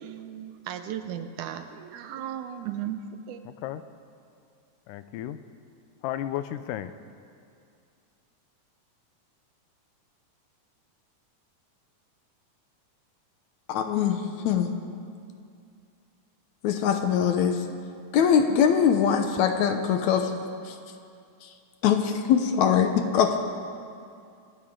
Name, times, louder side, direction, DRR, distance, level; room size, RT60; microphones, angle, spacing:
voice 1, 0.0-3.0 3.3-3.4, right 10 dB, 75° right, 9 dB, 2.0 m, -36 dB
voice 2, 3.5-3.8 4.9-5.4 6.0-6.9, left 12 dB, 90° left, 12 dB, 2.2 m, -33 dB
voice 3, 13.7-14.7 16.6-17.6 18.1-20.3 20.7-20.8 21.4-21.5 21.8-23.4, left 8 dB, 75° left, 6 dB, 2.0 m, -22 dB
26.0 x 12.5 x 3.8 m, 2.4 s
omnidirectional pair, 3.7 m